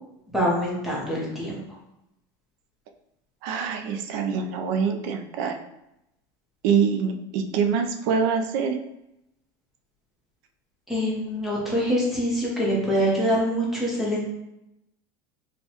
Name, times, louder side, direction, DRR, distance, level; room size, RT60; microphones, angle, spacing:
voice 1, 0.3-1.6 10.9-14.2, equal, ahead, -5 dB, 0.8 m, -24 dB
voice 2, 3.4-5.6 6.6-8.8, right 6 dB, 55° right, 5 dB, 0.4 m, -25 dB
4.4 x 2.2 x 2.8 m, 0.86 s
cardioid pair, 175°, 12 cm